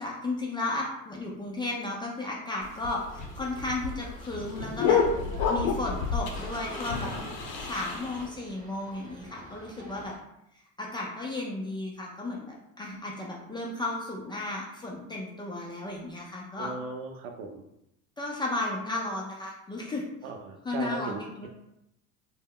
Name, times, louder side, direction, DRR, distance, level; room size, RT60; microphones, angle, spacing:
voice 1, 0.0-5.0 5.5-7.1 7.5-10.1 10.8-16.7 18.2-20.0 20.6-21.5, left 2 dB, 15° left, -3 dB, 0.3 m, -34 dB
sound 1, 2.6-8.3, left 5 dB, 60° left, 0.7 m, -29 dB
sound 2, 3.1-10.2, right 1 dB, 20° right, 0.7 m, -48 dB
voice 2, 16.6-17.6 20.2-21.5, right 4 dB, 70° right, 3 dB, 0.6 m, -38 dB
2.1 x 2.0 x 3.6 m, 0.81 s
hypercardioid pair, 90°, 39 cm